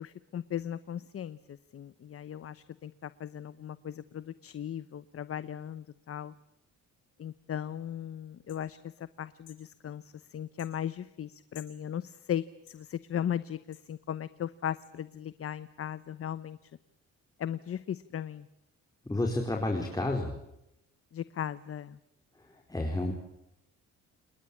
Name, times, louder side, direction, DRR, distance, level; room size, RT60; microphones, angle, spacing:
voice 1, 0.0-6.3 7.2-16.6 17.4-18.5 21.1-22.0, left 10 dB, 50° left, 15 dB, 0.9 m, -37 dB
sound 1, 8.5-8.6 9.4-9.6 10.6-10.7 11.5-11.8 12.7-12.8 13.7-13.9 14.8-14.9, left 11 dB, 85° left, 6.9 m, -53 dB
voice 2, 19.1-20.3 22.7-23.1, left 2 dB, 10° left, 1 dB, 4.4 m, -30 dB
29.0 x 20.5 x 8.5 m, 0.84 s
cardioid pair, 90°, 30 cm